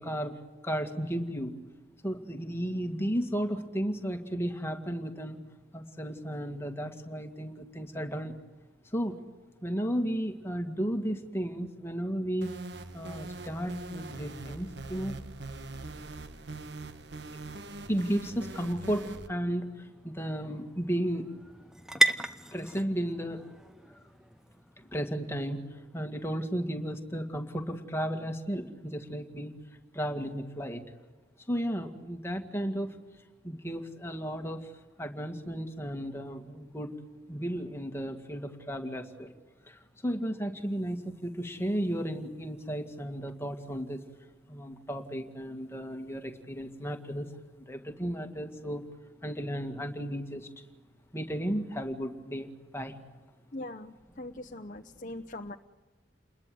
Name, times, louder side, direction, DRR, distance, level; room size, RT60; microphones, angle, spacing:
voice 1, 0.0-1.5 2.0-5.4 5.7-8.3 8.8-9.2 9.6-12.6 12.9-15.2 17.3-17.4 17.9-21.3 22.5-23.5 24.8-29.5 29.9-30.8 31.4-33.0 33.4-34.7 35.0-37.0 37.3-39.3 39.6-44.0 44.5-48.9 49.2-50.5 51.1-53.0, equal, 15° left, 5 dB, 2.0 m, -34 dB
sound 1, 12.4-19.3, right 2 dB, 65° right, 1.4 m, -42 dB
sound 2, 18.9-26.2, right 1 dB, 5° right, 0.8 m, -35 dB
voice 2, 53.5-55.6, left 1 dB, 40° left, 5 dB, 0.9 m, -41 dB
29.5 x 21.5 x 7.8 m, 1.3 s
head